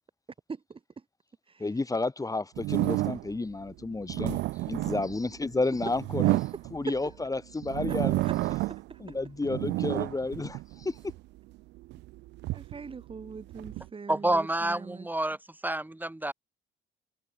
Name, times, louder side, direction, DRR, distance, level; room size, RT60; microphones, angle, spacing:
voice 1, 0.5-0.8 1.5-1.6 6.9-7.0 8.2-9.0 12.5-15.1, right 5 dB, 30° right, 1.8 m, -42 dB
voice 2, 1.6-4.4 4.7-6.4 6.7-8.2 9.0-11.0, left 3 dB, 20° left, 2.8 m, -31 dB
sound 1, 2.6-3.4 3.9-7.1 7.6-9.0 9.3-11.2 11.8-13.9, right 19 dB, 75° right, 0.4 m, -30 dB
voice 3, 14.1-15.4 15.6-16.3, right 1 dB, 10° right, 2.4 m, -28 dB
supercardioid pair, 80°, 18 cm